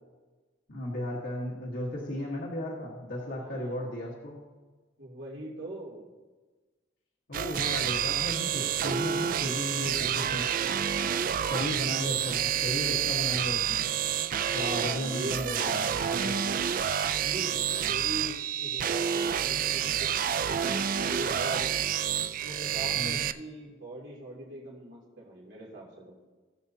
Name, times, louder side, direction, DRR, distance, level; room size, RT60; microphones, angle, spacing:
voice 1, 0.7-4.4 7.3-10.5 11.4-13.8 14.5-16.6 22.9-23.2, left 1 dB, 75° left, -5 dB, 1.5 m, -35 dB
voice 2, 3.3-3.8 5.0-6.1 10.9-11.4 14.3-15.9 17.2-17.5 17.9-20.1 20.4-21.8 22.4-26.2, right 2 dB, 80° right, -5 dB, 2.7 m, -41 dB
beat steet hardflp, 7.3-23.3, right 9 dB, 45° right, 0.3 m, -29 dB
18.5 x 7.2 x 2.8 m, 1.3 s
head